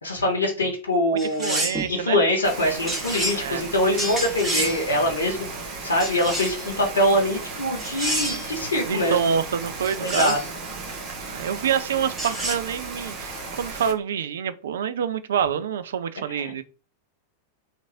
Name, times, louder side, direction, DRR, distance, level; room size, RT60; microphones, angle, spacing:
voice 1, 0.0-5.4 5.8-9.3 10.0-10.4 16.3-16.5, left 1 dB, 70° left, 0.8 m, -24 dB
sound 1, 1.2-1.9 2.9-3.4 4.0-4.8 6.0-6.7 7.8-8.5 9.8-10.5 12.2-12.5, right 1 dB, 15° right, 1.2 m, -28 dB
voice 2, 1.4-2.2 3.3-3.6 8.2-8.4 8.9-10.4 11.3-16.6, right 7 dB, 60° right, 0.3 m, -27 dB
Rain, 2.4-13.9, right 3 dB, 40° right, 0.8 m, -35 dB
2.9 x 2.5 x 2.6 m
figure-of-eight pair, 90°, 0 cm